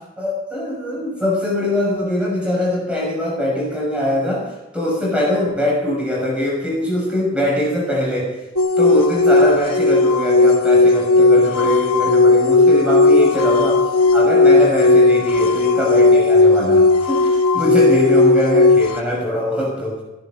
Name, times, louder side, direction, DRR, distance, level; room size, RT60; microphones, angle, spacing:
voice 1, 0.2-4.5 4.7-8.4 8.8-20.0, left 1 dB, 5° right, -3 dB, 6.3 m, -22 dB
sound 1, 8.6-19.0, left 3 dB, 80° left, 1.1 m, -14 dB
15.5 x 11.0 x 6.7 m, 1.1 s
head